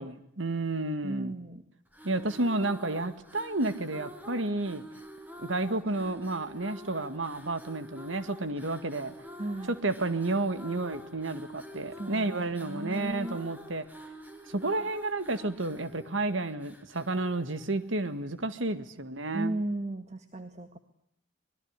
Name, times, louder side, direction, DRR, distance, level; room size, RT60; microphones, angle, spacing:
voice 1, 0.0-1.3 2.0-4.8 5.4-9.1 9.8-13.8 14.5-19.5, right 2 dB, 80° right, 12 dB, 2.0 m, -31 dB
voice 2, 1.0-1.6 9.4-9.7 11.9-13.4 19.3-20.8, right 1 dB, 35° right, 8 dB, 1.8 m, -35 dB
sound 1, 1.9-18.3, equal, 10° right, 4.3 m, -48 dB
26.5 x 21.0 x 9.7 m, 0.75 s
head